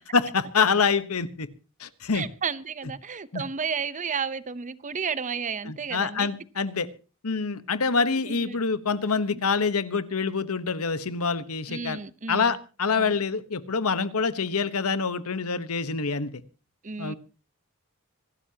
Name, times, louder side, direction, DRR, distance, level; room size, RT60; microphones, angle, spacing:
voice 1, 0.1-1.5 1.8-2.2 3.3-3.4 5.6-6.9 7.2-12.0 12.3-16.4 17.0-17.1, left 5 dB, 80° left, 1.2 m, -26 dB
voice 2, 2.1-6.3 8.2-8.6 9.3-9.4 11.7-12.6 13.0-13.2 16.8-17.1, right 6 dB, 35° right, 0.8 m, -32 dB
26.0 x 12.5 x 2.9 m
head